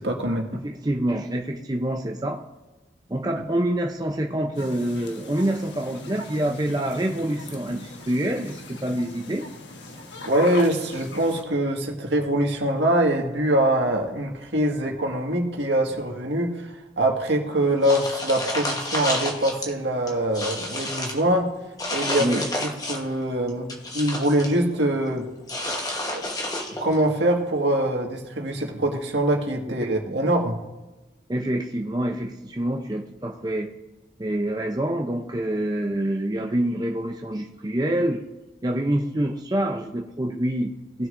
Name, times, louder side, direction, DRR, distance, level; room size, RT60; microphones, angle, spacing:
voice 1, 0.0-0.6 3.4-3.5 10.3-21.5 21.9-25.3 26.1-26.3 26.8-30.6, right 1 dB, 80° right, 1 dB, 1.8 m, -24 dB
voice 2, 0.6-2.4 3.1-9.5 22.2-22.5 29.8-29.9 31.3-33.7 34.2-38.2 38.6-41.1, right 1 dB, 20° right, 2 dB, 0.6 m, -26 dB
sound 1, 4.5-11.4, left 3 dB, 80° left, 1.3 m, -39 dB
sound 2, 17.8-19.7 20.1-21.2 21.8-23.1 23.5-24.5 25.5-27.0, left 1 dB, 20° left, 1.2 m, -30 dB
18.5 x 6.5 x 2.6 m, 1.1 s
head